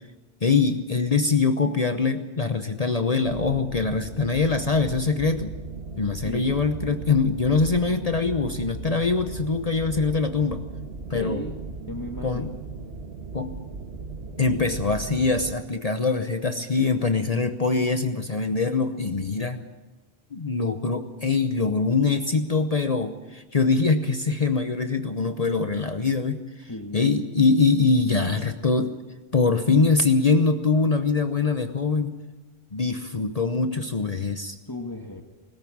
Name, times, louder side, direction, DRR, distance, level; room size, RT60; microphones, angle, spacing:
voice 1, 0.4-5.5 6.0-10.6 11.1-11.4 12.2-12.5 13.3-13.5 14.4-19.6 20.3-29.0 29.3-32.2 32.7-34.6, left 4 dB, 40° left, 8 dB, 1.0 m, -23 dB
sound 1, 3.2-15.5, right 4 dB, 75° right, 1.7 m, -37 dB
voice 2, 6.2-6.6 11.1-11.6 11.9-12.4 26.7-27.2 34.7-35.2, left 1 dB, 20° left, 3 dB, 1.4 m, -34 dB
21.0 x 14.0 x 8.7 m, 1.1 s
omnidirectional pair, 1.1 m